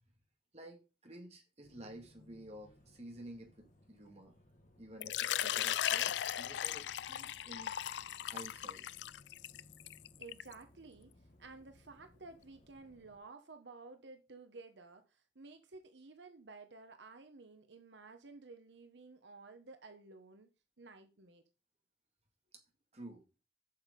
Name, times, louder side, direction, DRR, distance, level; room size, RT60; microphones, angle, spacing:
voice 1, 0.5-4.3 4.8-7.8 8.2-8.9 22.9-23.2, right 1 dB, 35° right, 2.0 m, -51 dB
sound 1, 1.6-13.2, left 1 dB, 45° left, 1.6 m, -64 dB
Water / Liquid, 5.0-10.5, left 11 dB, 75° left, 0.3 m, -37 dB
voice 2, 10.2-20.5 20.8-21.4, right 3 dB, 80° right, 1.0 m, -54 dB
8.0 x 6.5 x 5.1 m
head